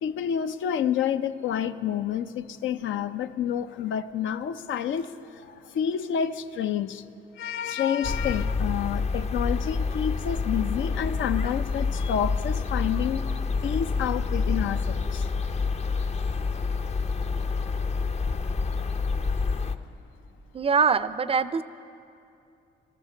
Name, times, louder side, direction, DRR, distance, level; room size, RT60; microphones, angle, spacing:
voice 1, 0.0-7.1 7.4-13.2 13.6-15.3, left 9 dB, 75° left, 10 dB, 0.6 m, -29 dB
sound 1, 8.0-19.7, left 4 dB, 35° left, 0.6 m, -28 dB
voice 2, 20.5-21.6, right 5 dB, 30° right, 14 dB, 0.4 m, -23 dB
14.0 x 14.0 x 6.5 m, 2.6 s
cardioid pair, 90°, 20 cm